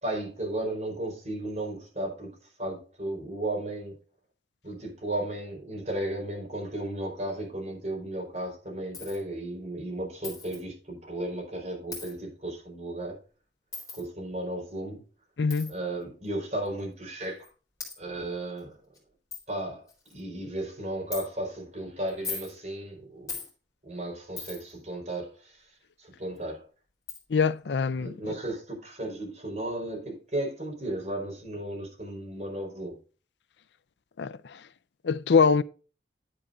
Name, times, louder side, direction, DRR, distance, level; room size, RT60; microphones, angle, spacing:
voice 1, 0.0-4.0 4.6-13.2 13.9-15.0 15.7-17.5 18.0-18.8 19.5-23.3 23.8-25.7 26.0-26.7 28.0-33.0, right 1 dB, 40° right, 4.7 m, -34 dB
Coin (dropping), 8.9-9.2 10.2-10.6 11.9-12.1 13.7-14.0 15.5-15.7 16.6-16.7 17.4-17.5 17.8-17.9 18.6-18.7 18.9-19.0 19.3-19.4 19.9-20.2 21.1-21.2 22.1-22.5 23.3-23.5 24.4-24.7 26.4-26.5 27.1-27.2, left 4 dB, 20° left, 4.0 m, -38 dB
voice 2, 15.4-15.7 27.3-28.3 34.2-34.6 35.0-35.6, left 5 dB, 80° left, 0.5 m, -24 dB
11.0 x 8.5 x 2.6 m
head